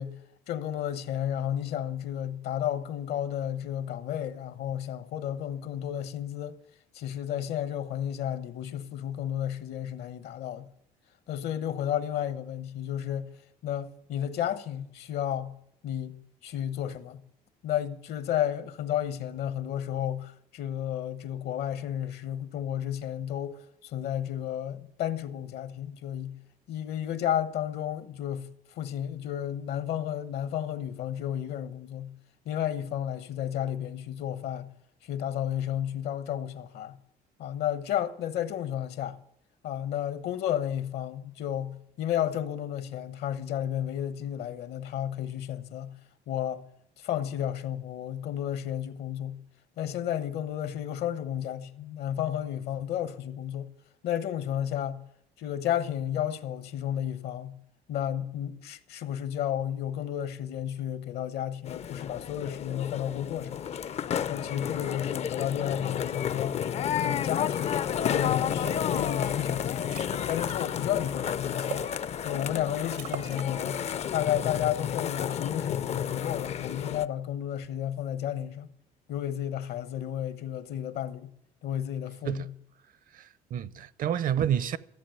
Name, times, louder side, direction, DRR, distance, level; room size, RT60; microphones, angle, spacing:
voice 1, 0.0-6.6 6.9-10.7 11.3-13.4 13.6-15.6 15.8-16.2 16.4-17.2 17.6-26.4 26.7-28.5 28.8-32.1 32.4-34.7 35.0-37.0 37.4-39.2 39.6-46.0 46.3-46.6 47.0-49.4 49.8-53.7 54.0-55.1 55.4-57.6 57.9-63.6 64.3-66.7 67.0-67.7 68.1-70.0 70.2-71.9 72.2-78.7 79.1-81.3 81.6-82.5, left 10 dB, 70° left, 1.0 m, -32 dB
sound 1, 61.7-77.1, left 9 dB, 40° left, 0.4 m, -31 dB
sound 2, 67.6-67.7 68.0-68.2 68.6-69.1 69.5-69.6 69.8-70.6 71.1-72.0 72.5-72.6 72.9-73.5 73.8-74.2, right 10 dB, 80° right, 1.1 m, -41 dB
voice 2, 83.1-84.8, right 9 dB, 55° right, 0.6 m, -29 dB
14.0 x 7.6 x 9.0 m
cardioid pair, 110°, 17 cm